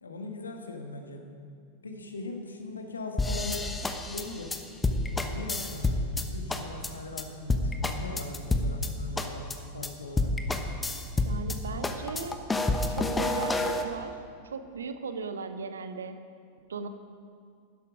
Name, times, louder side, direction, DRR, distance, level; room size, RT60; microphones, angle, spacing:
voice 1, 0.0-1.3 1.8-3.7 4.1-4.6 5.0-10.3, left 3 dB, 75° left, 4 dB, 1.4 m, -40 dB
sound 1, 3.2-6.2 6.5-6.9 7.2-7.3 7.5-8.9 9.2-9.5 9.8-9.9 10.2-11.6 11.8-13.8, left 2 dB, 10° left, 1.0 m, -28 dB
voice 2, 11.2-12.4 12.9-14.2 14.4-16.2 16.7-16.9, right 5 dB, 70° right, 9 dB, 0.9 m, -37 dB
12.0 x 11.5 x 5.0 m, 2.3 s
figure-of-eight pair, 90°, 0 cm